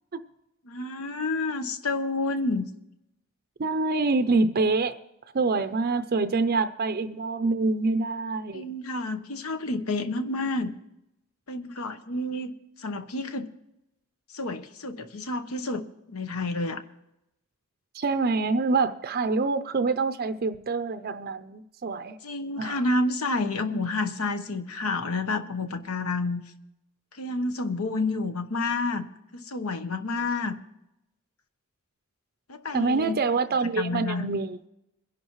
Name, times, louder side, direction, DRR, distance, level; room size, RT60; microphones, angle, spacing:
voice 1, 0.6-2.6 8.5-10.7 11.5-12.5 12.8-13.5 14.3-16.8 22.2-26.4 27.1-29.1 29.3-30.5 32.5-33.2 33.8-34.3, left 2 dB, 85° left, 9 dB, 1.0 m, -29 dB
voice 2, 3.6-4.9 5.3-8.7 17.9-22.2 22.6-22.8 32.7-34.6, right 3 dB, 45° right, 10 dB, 0.5 m, -26 dB
23.0 x 11.0 x 3.1 m, 0.87 s
head